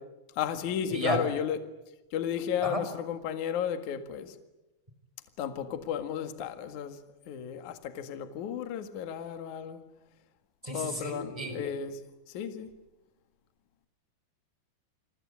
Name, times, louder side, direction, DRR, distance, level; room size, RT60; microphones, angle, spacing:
voice 1, 0.4-1.6 2.1-4.3 5.4-7.0 7.3-9.8 10.7-12.0 12.3-12.7, left 8 dB, 55° left, 2.6 m, -33 dB
voice 2, 0.9-1.2 2.6-2.8 10.6-11.6, equal, 5° right, 5.2 m, -32 dB
29.0 x 24.0 x 8.5 m
omnidirectional pair, 5.3 m